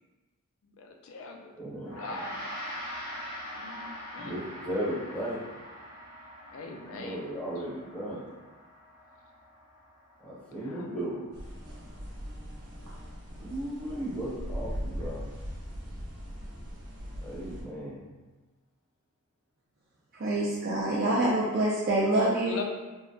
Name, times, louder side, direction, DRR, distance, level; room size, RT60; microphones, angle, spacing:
voice 1, 0.6-1.5 2.0-2.4 3.6-4.4 6.5-7.2 10.7-11.0 22.4-22.6, left 4 dB, 65° left, 4 dB, 0.3 m, -41 dB
voice 2, 1.6-2.2 4.2-5.7 6.7-8.3 10.2-11.3 13.4-15.3 17.2-18.1, right 1 dB, 5° left, -8 dB, 0.6 m, -36 dB
Gong, 1.8-11.4, equal, 80° left, 1.1 m, -43 dB
sound 1, 11.3-17.6, equal, 90° right, 0.8 m, -40 dB
voice 3, 20.2-22.6, right 1 dB, 45° right, -6 dB, 0.4 m, -26 dB
3.6 x 2.1 x 2.5 m, 1.2 s
head